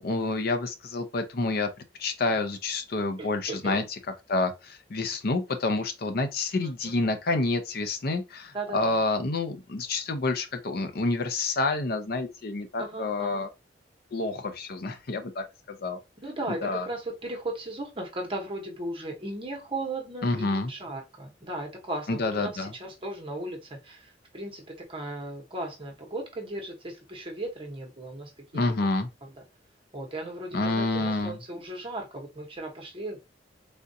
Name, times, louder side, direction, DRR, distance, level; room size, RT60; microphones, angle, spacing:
voice 1, 0.0-1.7 2.0-4.0 4.3-13.5 14.1-16.0 16.6-16.9 20.2-20.7 22.1-22.7 28.5-29.1 30.5-31.4, left 3 dB, 60° left, 0.6 m, -28 dB
voice 2, 3.2-3.8 6.5-7.0 8.5-9.0 12.8-13.5 16.2-28.6 29.2-29.3 29.9-33.2, right 2 dB, 30° right, 1.0 m, -37 dB
3.5 x 2.5 x 2.7 m
head